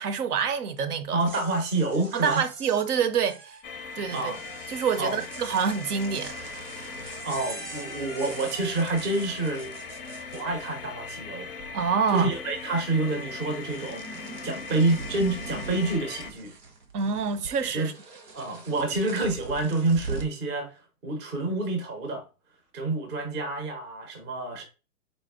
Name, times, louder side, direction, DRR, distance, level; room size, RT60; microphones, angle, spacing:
voice 1, 0.0-1.2 2.1-3.6 4.0-4.3 4.7-6.4 11.7-12.3 16.9-17.9, right 6 dB, 70° right, 0.7 m, -26 dB
sound 1, 1.0-11.1 11.3-12.1 12.3-20.4, right 4 dB, 90° right, 1.1 m, -43 dB
voice 2, 1.1-2.4 4.1-4.4 5.0-5.2 7.2-9.7 10.3-11.7 12.1-14.0 14.4-16.5 17.7-17.9 18.3-20.7 21.0-22.2 22.7-24.6, right 2 dB, 20° right, 0.5 m, -28 dB
sound 2, 3.6-16.3, left 5 dB, 40° left, 0.5 m, -40 dB
4.1 x 2.0 x 3.5 m
hypercardioid pair, 140°, 48 cm